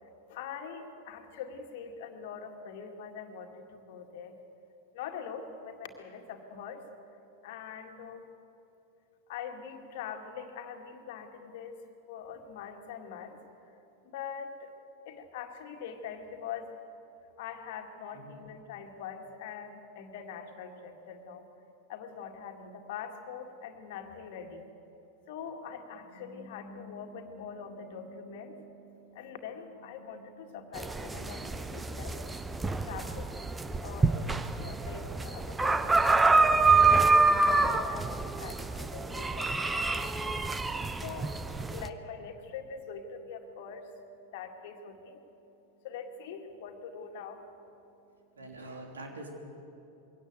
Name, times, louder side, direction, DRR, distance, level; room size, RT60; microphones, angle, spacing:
voice 1, 0.3-4.4 4.9-6.8 7.4-8.3 9.3-11.8 12.1-13.4 14.0-14.7 15.1-16.7 17.4-21.5 21.9-24.7 25.3-33.3 33.8-44.0 44.3-48.2, left 6 dB, 50° left, 4 dB, 2.1 m, -43 dB
sound 1, 30.8-41.9, right 3 dB, 10° right, 0.8 m, -27 dB
voice 2, 48.3-49.3, right 2 dB, 70° right, 2 dB, 3.3 m, -44 dB
22.5 x 17.5 x 8.1 m, 2.9 s
figure-of-eight pair, 90°, 0 cm